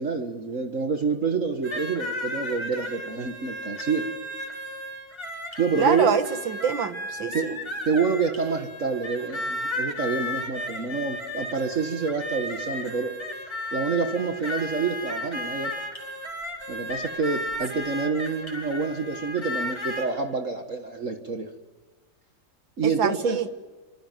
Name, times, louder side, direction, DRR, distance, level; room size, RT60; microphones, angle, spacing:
voice 1, 0.0-4.1 5.6-6.2 7.3-7.5 7.8-13.2 13.7-15.7 16.7-21.5 22.8-23.4, right 4 dB, 45° right, 5 dB, 1.9 m, -27 dB
sound 1, 1.6-20.1, left 1 dB, 15° left, 4.6 m, -34 dB
voice 2, 5.8-7.6 22.8-23.5, right 7 dB, 80° right, 10 dB, 2.3 m, -25 dB
25.5 x 25.5 x 9.2 m, 1.3 s
omnidirectional pair, 2.0 m